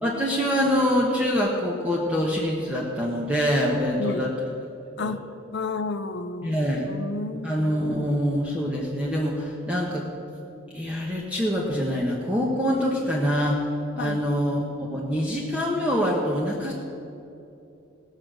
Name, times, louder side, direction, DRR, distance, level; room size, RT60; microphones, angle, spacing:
voice 1, 0.0-4.3 5.0-5.1 6.4-6.9 7.4-10.0 10.7-13.6 13.9-14.6 14.9-16.7, equal, 5° right, -3 dB, 1.1 m, -25 dB
voice 2, 4.0-4.3 5.0-5.2 5.5-6.6 6.9-7.6 14.0-14.2, left 3 dB, 55° left, 11 dB, 0.6 m, -31 dB
18.5 x 6.5 x 6.2 m, 2.7 s
head